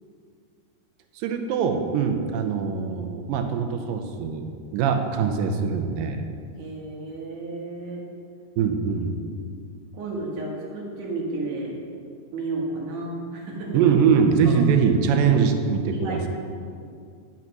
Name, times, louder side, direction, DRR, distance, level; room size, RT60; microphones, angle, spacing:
voice 1, 1.2-4.5 4.7-6.2 8.6-9.1 13.7-16.2, right 6 dB, 90° right, 6 dB, 2.5 m, -22 dB
voice 2, 6.6-8.1 9.9-11.8 12.3-13.8 14.4-14.6 15.1-15.4 15.9-16.3, right 2 dB, 70° right, -2 dB, 3.1 m, -32 dB
10.5 x 5.9 x 6.0 m, 2.3 s
omnidirectional pair, 3.9 m